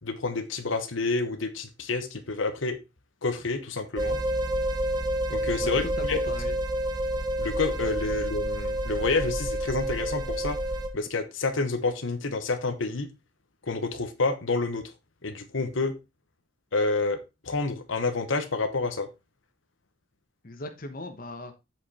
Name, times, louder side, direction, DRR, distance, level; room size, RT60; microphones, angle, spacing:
voice 1, 0.0-2.8 3.2-4.2 5.3-5.8 6.1-6.2 7.4-10.6 10.9-13.1 13.6-14.8 15.2-15.9 16.7-17.2 17.4-19.1, left 3 dB, 75° left, 1.2 m, -28 dB
sound 1, 4.0-10.9, right 1 dB, 20° right, 1.1 m, -29 dB
voice 2, 5.6-6.6 20.4-21.5, left 1 dB, 45° left, 1.1 m, -38 dB
7.8 x 5.3 x 4.2 m
head